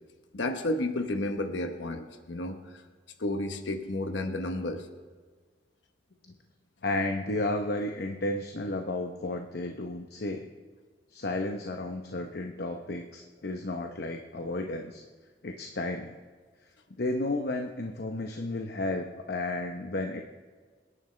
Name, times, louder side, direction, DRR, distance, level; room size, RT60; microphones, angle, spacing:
voice 1, 0.3-2.8 3.2-4.9, left 1 dB, 80° left, 6 dB, 1.1 m, -32 dB
voice 2, 6.8-10.5 11.1-15.0 15.4-16.1 17.0-20.2, left 2 dB, 60° left, 4 dB, 0.8 m, -32 dB
26.0 x 11.0 x 3.3 m, 1.5 s
head